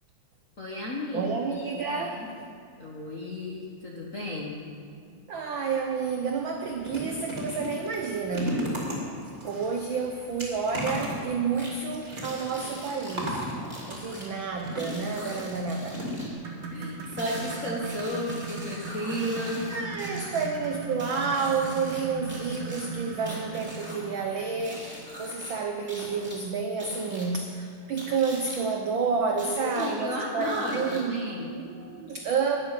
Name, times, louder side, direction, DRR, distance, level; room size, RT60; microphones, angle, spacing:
voice 1, 0.6-1.3 1.7-2.3 2.8-4.6 14.3-14.4 14.7-15.3 16.7-19.7 29.6-31.5, left 1 dB, 50° left, -3 dB, 0.9 m, -33 dB
voice 2, 1.1-2.2 5.3-8.7 9.4-13.4 13.9-16.1 19.7-31.2 31.5-32.6, right 5 dB, 80° right, 3 dB, 1.1 m, -30 dB
sound 1, 6.0-6.1 6.4-15.2 15.9-16.7 17.0-17.1 17.4-17.5, equal, 25° right, 2.6 m, -36 dB
sound 2, 11.5-11.7 12.2-14.3 14.8-16.3 17.2-20.5 21.0-22.0 22.3-24.0 24.6-25.5 25.9-26.4 26.8-27.3 28.0-28.6 29.4-29.9 30.4-31.2, equal, 5° right, 2.7 m, -43 dB
sound 3, 16.3-24.7 26.1-26.3 26.7-26.8 27.5-27.6, right 4 dB, 55° right, 2.2 m, -39 dB
11.5 x 7.5 x 9.8 m, 2.3 s
omnidirectional pair, 3.3 m